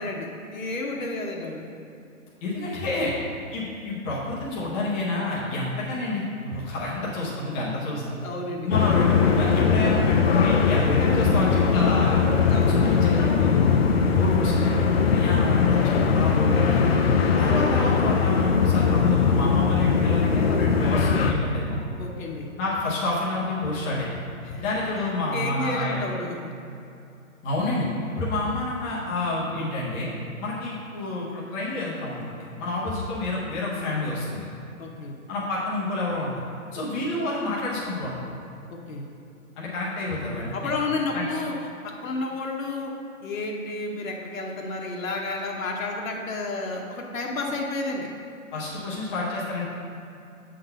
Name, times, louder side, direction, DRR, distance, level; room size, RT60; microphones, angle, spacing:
voice 1, 0.0-1.6 8.2-8.7 12.5-13.4 15.1-15.2 22.0-22.5 24.4-24.6 25.0-25.1 25.3-26.5 34.8-35.2 38.7-39.1 40.5-41.5 41.8-42.9 43.2-48.1, left 3 dB, 65° left, 0 dB, 1.1 m, -31 dB
voice 2, 2.4-3.1 3.5-8.2 8.6-12.2 12.7-13.7 14.1-16.9 17.4-21.8 22.6-24.1 24.6-26.0 27.4-30.1 30.4-34.5 35.3-36.3 36.7-38.1 39.6-40.7 41.1-41.2 48.5-49.6, left 2 dB, 10° left, -7 dB, 0.7 m, -28 dB
sound 1, 8.7-21.3, left 5 dB, 45° left, 0.5 m, -20 dB
7.6 x 4.0 x 5.4 m, 2.6 s
hypercardioid pair, 155°, 43 cm